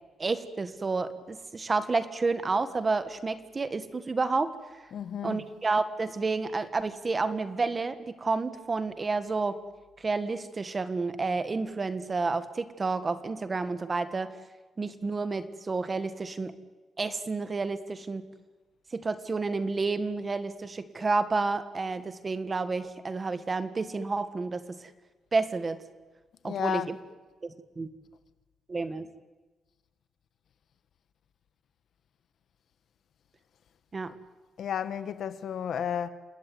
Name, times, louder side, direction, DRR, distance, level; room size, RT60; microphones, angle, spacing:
voice 1, 0.2-4.5 5.2-9.6 10.0-14.3 14.8-16.5 17.0-18.2 18.9-24.9 25.3-25.8 26.4-26.9 27.4-27.9 28.7-29.1 33.9-34.1, right 3 dB, 25° right, 1.5 m, -30 dB
voice 2, 4.9-5.4 26.4-27.0 34.6-36.1, left 9 dB, 55° left, 1.5 m, -32 dB
28.0 x 20.5 x 9.5 m
wide cardioid pair, 165°, 0 cm